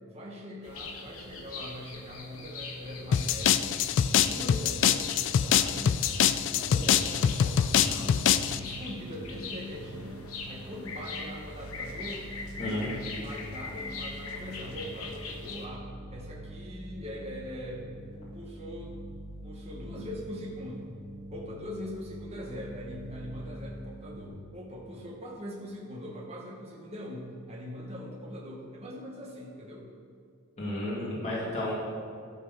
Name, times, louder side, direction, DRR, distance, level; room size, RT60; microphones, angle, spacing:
voice 1, 0.1-3.8 4.3-6.0 6.4-8.3 8.6-12.3 12.6-19.1 19.4-20.9 21.3-29.9, equal, 30° right, -2 dB, 1.1 m, -42 dB
sound 1, 0.6-15.7, left 4 dB, 85° left, 1.1 m, -42 dB
sound 2, 3.1-8.6, left 9 dB, 60° left, 0.3 m, -24 dB
sound 3, 5.5-24.3, equal, 15° right, 1.9 m, -45 dB
voice 2, 12.6-12.9 30.6-31.7, left 1 dB, 35° left, -8 dB, 2.1 m, -32 dB
11.5 x 4.3 x 6.2 m, 2.3 s
head